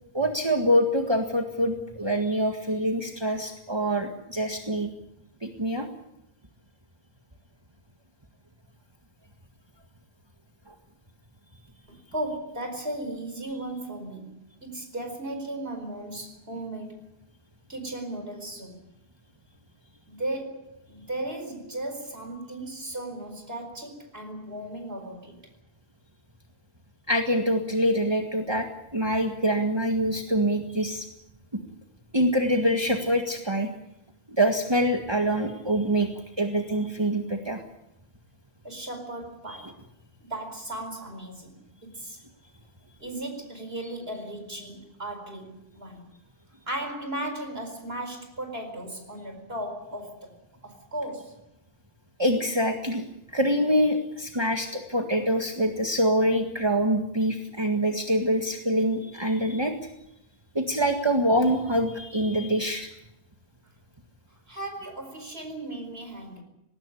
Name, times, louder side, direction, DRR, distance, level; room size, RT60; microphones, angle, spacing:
voice 1, 0.1-4.9 5.4-5.9 27.1-28.7 28.9-31.1 32.1-33.7 34.3-36.1 36.4-37.6 39.5-39.6 52.2-53.1 53.3-59.7 60.6-62.9, equal, 25° right, 3 dB, 1.8 m, -25 dB
voice 2, 11.9-17.1 17.7-18.8 20.1-25.4 38.6-39.8 40.2-42.2 43.0-46.1 46.7-50.4 50.6-51.4 64.5-66.4, right 1 dB, 70° right, 5 dB, 4.9 m, -36 dB
20.0 x 18.5 x 9.9 m, 0.85 s
omnidirectional pair, 1.1 m